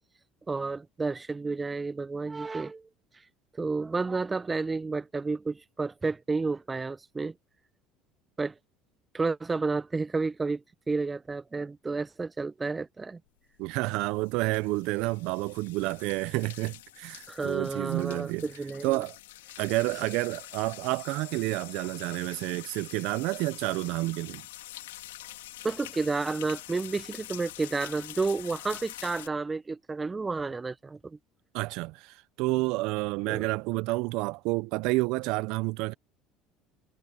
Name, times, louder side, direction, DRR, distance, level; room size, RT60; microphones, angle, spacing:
voice 1, 0.5-2.8 3.6-7.3 8.4-8.5 9.1-13.2 17.3-19.0 25.6-31.2 33.3-33.5, right 3 dB, 20° right, 1.2 m, -31 dB
sound 1, 13.6-29.3, left 16 dB, 85° left, 4.1 m, -46 dB
voice 2, 13.6-18.5 18.8-19.2 19.6-24.4 31.5-35.9, right 22 dB, 70° right, 0.9 m, -29 dB
hypercardioid pair, 70°, 0 cm